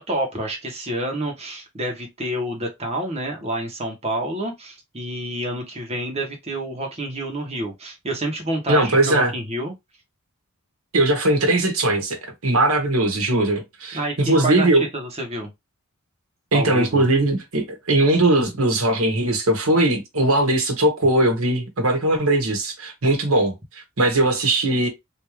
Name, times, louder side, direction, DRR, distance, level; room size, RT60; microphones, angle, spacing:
voice 1, 0.0-9.7 13.9-15.5 16.5-17.0, right 1 dB, 30° right, 1.1 m, -28 dB
voice 2, 8.7-9.3 10.9-14.8 16.5-23.5 24.0-24.9, right 1 dB, 75° right, 1.2 m, -20 dB
3.5 x 2.7 x 3.0 m
head